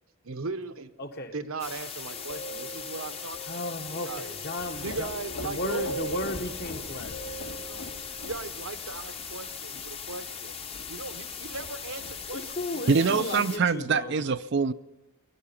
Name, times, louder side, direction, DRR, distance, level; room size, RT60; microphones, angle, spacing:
voice 1, 0.2-0.9 1.3-3.4 4.0-4.3 4.8-7.3 7.6-7.9 8.2-10.6 10.9-12.8, right 3 dB, 70° right, 9 dB, 1.0 m, -38 dB
voice 2, 1.0-1.3 3.5-5.1 5.4-7.4 12.3-14.2, left 2 dB, 45° left, 6 dB, 1.2 m, -35 dB
sound 1, 1.6-13.6, left 7 dB, 25° left, 0.8 m, -39 dB
sound 2, 2.1-9.0 13.2-13.3 13.7-13.8, right 1 dB, 60° left, 2.5 m, -45 dB
sound 3, 4.6-12.6, left 1 dB, 80° left, 2.3 m, -44 dB
voice 3, 12.9-14.7, right 5 dB, 50° right, 12 dB, 0.4 m, -24 dB
20.5 x 12.0 x 5.8 m, 1.1 s
head